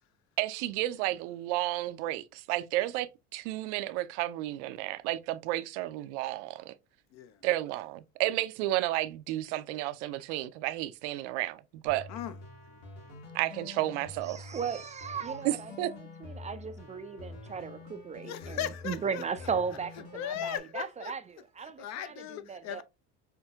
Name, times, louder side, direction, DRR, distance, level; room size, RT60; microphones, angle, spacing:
voice 1, 0.4-6.7 7.4-12.1 13.3-14.4 15.4-15.9, right 15 dB, 85° right, 0.6 m, -32 dB
voice 2, 7.1-7.4 12.1-12.4 12.7-13.2 18.2-19.5 20.1-21.1 21.6-22.8, left 10 dB, 50° left, 0.6 m, -38 dB
sound 1, 11.9-20.6, left 3 dB, 80° left, 2.0 m, -47 dB
voice 3, 14.3-15.9 16.2-18.6 18.8-22.8, right 6 dB, 20° right, 0.3 m, -36 dB
5.9 x 2.7 x 2.3 m
supercardioid pair, 105°, 34 cm